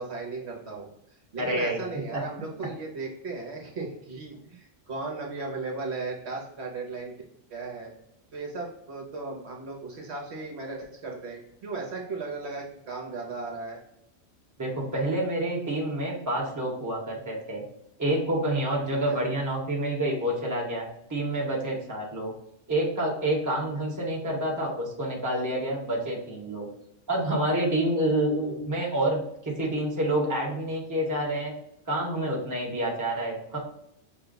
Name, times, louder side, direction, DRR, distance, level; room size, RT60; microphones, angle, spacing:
voice 1, 0.0-7.1 7.5-7.9 8.3-13.8 18.9-19.2, right 3 dB, 65° right, 0 dB, 1.1 m, -36 dB
voice 2, 1.4-1.8 2.1-2.2 14.6-17.6 18.0-22.3 22.7-26.7 27.1-31.5 31.9-33.6, right 1 dB, 15° right, -2 dB, 1.0 m, -28 dB
6.1 x 2.2 x 3.8 m, 0.81 s
omnidirectional pair, 1.3 m